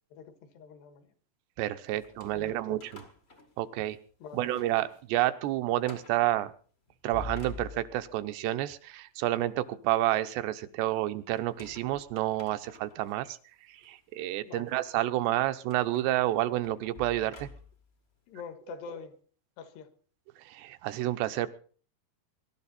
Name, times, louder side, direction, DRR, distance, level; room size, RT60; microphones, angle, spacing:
voice 1, 0.1-1.1 1.9-2.0 2.3-2.8 4.2-4.5 14.4-14.7 18.3-19.1 19.6-19.9, left 7 dB, 80° left, 9 dB, 3.6 m, -45 dB
voice 2, 1.6-3.0 3.6-4.0 4.3-6.5 7.0-13.4 13.7-17.5 20.5-21.5, right 15 dB, 85° right, 11 dB, 3.0 m, -29 dB
sound 1, 2.0-4.0 4.4-5.0 5.3-5.4 5.8-6.2 6.9-8.2 11.4-13.1 13.8-13.9 15.7-17.9, left 3 dB, 60° left, 0.6 m, -47 dB
22.5 x 12.0 x 4.2 m, 0.43 s
omnidirectional pair, 4.8 m